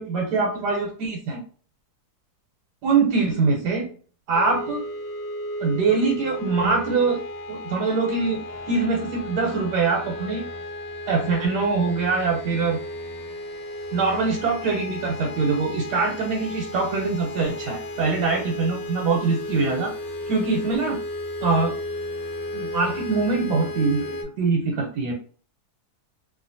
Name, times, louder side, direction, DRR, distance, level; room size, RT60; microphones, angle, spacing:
voice 1, 0.0-1.4 2.8-3.9 4.3-4.8 5.6-7.2 7.5-10.5 11.1-12.8 13.9-19.9 20.3-21.0 21.4-21.7 22.5-25.1, right 4 dB, 90° right, 0 dB, 1.3 m, -23 dB
sound 1, 4.3-24.2, left 1 dB, 85° left, 1.2 m, -34 dB
2.8 x 2.3 x 2.6 m, 0.42 s
omnidirectional pair, 1.7 m